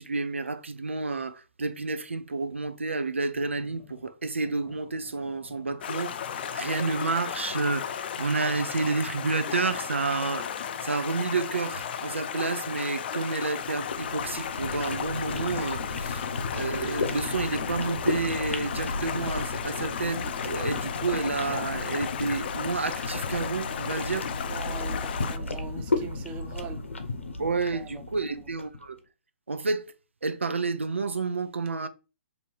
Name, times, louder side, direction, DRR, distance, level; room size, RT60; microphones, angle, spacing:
voice 1, 0.0-16.2 16.5-24.3 27.4-29.0 29.5-29.9 30.2-31.9, right 3 dB, 90° right, 0.5 m, -30 dB
sound 1, 3.3-21.6, left 5 dB, 35° left, 1.2 m, -51 dB
Stream, 5.8-25.4, left 8 dB, 55° left, 0.4 m, -35 dB
sound 2, 13.6-28.8, left 3 dB, 85° left, 0.7 m, -34 dB
voice 2, 24.5-26.8 27.7-27.9 28.2-28.4, right 5 dB, 20° right, 0.6 m, -41 dB
2.9 x 2.7 x 4.5 m
hypercardioid pair, 130°, 6 cm